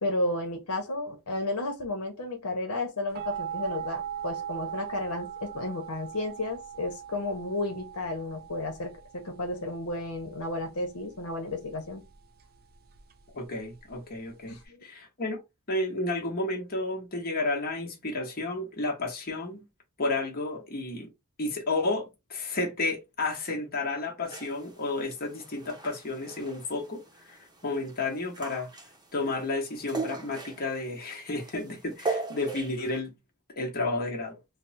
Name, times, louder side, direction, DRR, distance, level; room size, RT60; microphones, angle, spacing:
voice 1, 0.0-12.0 14.4-14.8, left 2 dB, 75° left, 1.0 m, -33 dB
sound 1, 3.1-14.7, right 9 dB, 45° right, 0.5 m, -40 dB
voice 2, 13.3-14.6 14.8-15.4 15.7-19.6 20.0-21.1 21.4-28.7 29.1-33.1 33.6-34.4, left 2 dB, 45° left, 1.1 m, -32 dB
sound 2, 24.2-33.0, right 3 dB, 20° right, 0.7 m, -39 dB
3.3 x 2.1 x 4.1 m
head